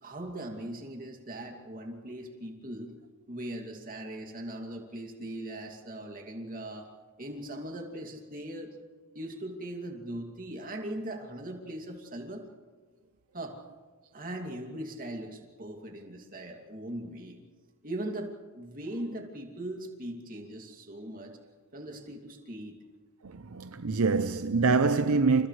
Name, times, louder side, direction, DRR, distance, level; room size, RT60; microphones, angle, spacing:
voice 1, 0.0-2.9 3.3-6.9 7.2-8.7 9.1-12.4 13.3-13.6 14.1-17.4 17.8-21.4 21.7-22.8, right 1 dB, 40° right, 2.7 m, -39 dB
voice 2, 23.2-25.5, right 4 dB, 75° right, 0.7 m, -25 dB
29.5 x 28.5 x 3.3 m
head